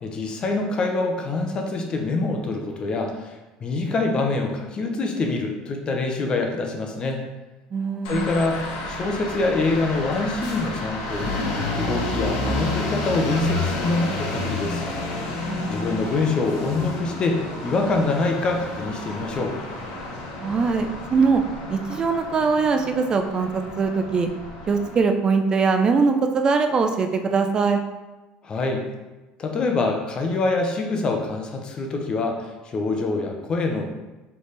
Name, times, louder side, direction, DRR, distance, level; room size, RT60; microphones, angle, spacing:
voice 1, 0.0-7.2 8.1-11.4 11.7-14.8 15.7-19.6 28.4-28.9 29.4-33.9, left 3 dB, 30° left, 2 dB, 0.7 m, -25 dB
voice 2, 7.7-8.3 15.4-15.8 20.4-21.4 21.7-24.3 24.7-27.8, right 4 dB, 30° right, 6 dB, 0.4 m, -22 dB
sound 1, 8.0-25.0, left 2 dB, 80° left, 0.9 m, -30 dB
4.1 x 3.4 x 3.2 m, 1.1 s
cardioid pair, 125°, 3 cm